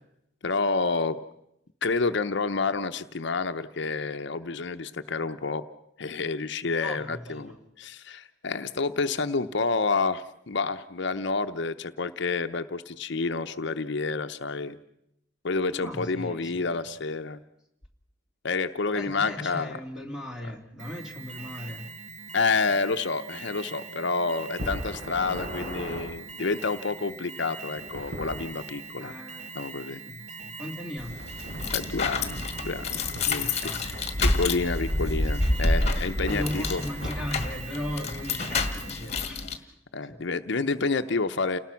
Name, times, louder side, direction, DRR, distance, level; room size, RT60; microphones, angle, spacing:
voice 1, 0.4-1.2 1.8-5.6 6.0-14.8 15.4-17.4 18.4-19.8 22.3-29.1 29.5-30.0 31.7-32.4 32.6-36.8 39.9-41.6, left 4 dB, 60° left, 9 dB, 0.8 m, -29 dB
voice 2, 6.8-7.6 15.7-16.8 18.9-21.9 29.0-29.5 29.9-31.1 33.3-34.3 36.3-39.7 40.1-40.2, equal, 5° right, 1 dB, 2.8 m, -38 dB
Alarm, 20.8-39.2, right 4 dB, 35° right, 0.9 m, -42 dB
sound 1, 24.5-26.0 27.7-28.4 31.1-37.5, equal, 50° right, 7.6 m, -38 dB
sound 2, 31.0-39.6, left 2 dB, 35° left, 1.8 m, -28 dB
29.5 x 19.0 x 5.8 m, 0.79 s
head